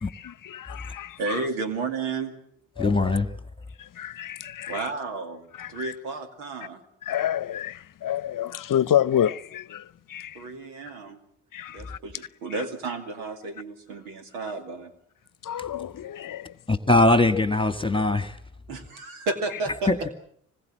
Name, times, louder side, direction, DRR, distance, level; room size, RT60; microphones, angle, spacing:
voice 1, 0.1-1.4 2.8-3.1 3.8-4.9 5.5-5.9 7.0-10.5 11.5-12.0 15.4-16.5, left 10 dB, 50° left, 0.9 m, -29 dB
voice 2, 1.2-2.3 4.7-6.8 10.3-11.2 11.7-14.9 18.7-20.1, right 3 dB, 90° right, 2.4 m, -32 dB
voice 3, 2.8-3.3 16.7-18.4 19.9-20.0, left 2 dB, 10° left, 1.8 m, -21 dB
25.5 x 20.5 x 7.5 m
hypercardioid pair, 50°, 43 cm